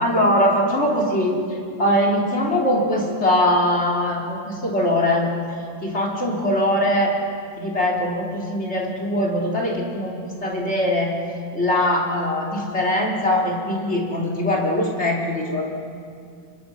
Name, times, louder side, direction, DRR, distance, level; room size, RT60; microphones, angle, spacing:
voice 1, 0.0-5.3 5.8-7.1 7.6-11.2 11.5-15.6, left 1 dB, 15° left, -1 dB, 2.9 m, -21 dB
28.5 x 24.5 x 6.1 m, 2.2 s
omnidirectional pair, 4.9 m